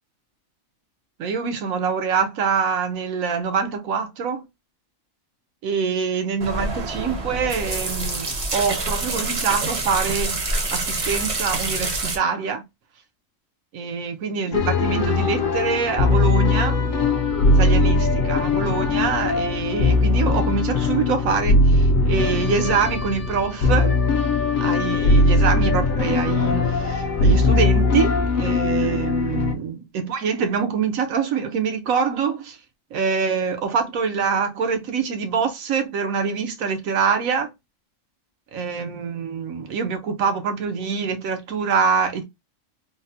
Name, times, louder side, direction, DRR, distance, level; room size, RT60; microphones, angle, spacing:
voice 1, 1.2-4.5 5.6-12.6 13.7-16.8 17.5-24.0 24.6-32.6 32.9-37.5 38.5-42.2, right 6 dB, 90° right, 1.2 m, -25 dB
sound 1, 6.4-12.2, right 2 dB, 35° right, 0.5 m, -26 dB
sound 2, 14.5-29.5, left 3 dB, 55° left, 0.5 m, -20 dB
3.5 x 2.1 x 2.6 m
omnidirectional pair, 1.4 m